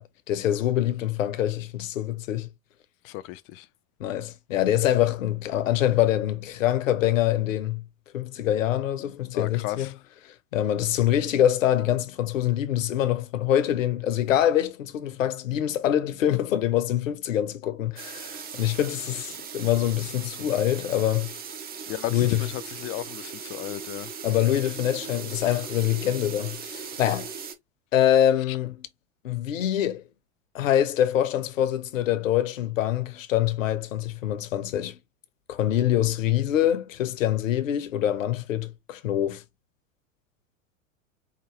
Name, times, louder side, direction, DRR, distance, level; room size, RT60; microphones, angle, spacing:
voice 1, 0.0-2.5 4.0-7.9 8.1-9.9 10.2-21.3 22.1-22.5 24.2-27.3 27.9-28.9 29.2-30.0 30.5-35.0 35.5-39.4, left 11 dB, 70° left, 0.9 m, -25 dB
voice 2, 3.0-3.7 9.3-9.9 21.9-24.1 28.5-28.6, left 15 dB, 30° left, 0.5 m, -34 dB
sound 1, 18.0-27.5, right 6 dB, 20° right, 0.8 m, -39 dB
4.9 x 2.6 x 3.0 m
figure-of-eight pair, 90°, 41 cm